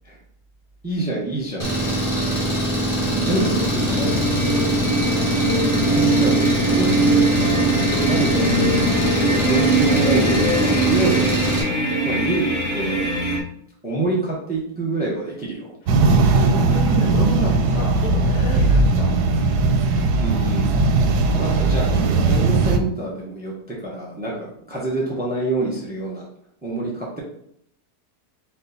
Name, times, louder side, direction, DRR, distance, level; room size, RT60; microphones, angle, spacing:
voice 1, 0.8-1.7 3.3-3.6 3.9-4.1 5.9-7.4 8.0-8.5 9.2-13.0 13.8-15.7 20.2-20.7 21.3-26.3 26.6-27.2, right 2 dB, 10° right, -3 dB, 0.8 m, -27 dB
Engine, 1.6-11.6, right 1 dB, 25° left, 1.1 m, -23 dB
sound 1, 2.7-13.4, right 1 dB, 45° left, 0.5 m, -21 dB
voice 2, 2.9-4.3 16.0-19.2, equal, 80° left, -5 dB, 2.1 m, -30 dB
sound 2, 15.9-22.8, right 3 dB, 85° right, 1.2 m, -18 dB
4.8 x 2.3 x 4.1 m, 0.70 s
omnidirectional pair, 1.7 m